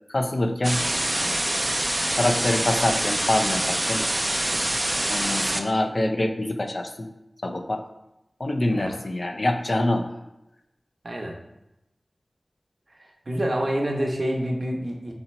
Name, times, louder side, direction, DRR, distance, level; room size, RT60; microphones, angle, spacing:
voice 1, 0.1-0.8 1.2-1.4 2.2-4.0 5.1-7.1 7.4-7.8 8.4-10.1, left 1 dB, 55° left, 4 dB, 0.5 m, -25 dB
sound 1, 0.6-5.6, right 1 dB, 25° right, 0.4 m, -25 dB
voice 2, 11.0-11.4 13.0-15.1, equal, 55° right, 0 dB, 0.9 m, -27 dB
4.3 x 2.8 x 4.3 m, 0.90 s
wide cardioid pair, 45°, 0 cm